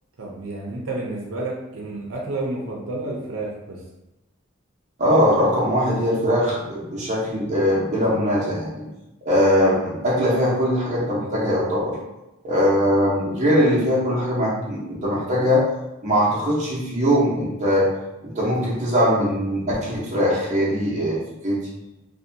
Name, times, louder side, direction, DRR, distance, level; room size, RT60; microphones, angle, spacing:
voice 1, 0.2-3.8, right 2 dB, 80° right, -3 dB, 0.5 m, -30 dB
voice 2, 5.0-8.8 9.2-12.0 12.4-15.7 16.0-17.9 18.2-21.6, equal, 35° right, -7 dB, 0.7 m, -21 dB
2.6 x 2.1 x 2.6 m, 0.97 s
head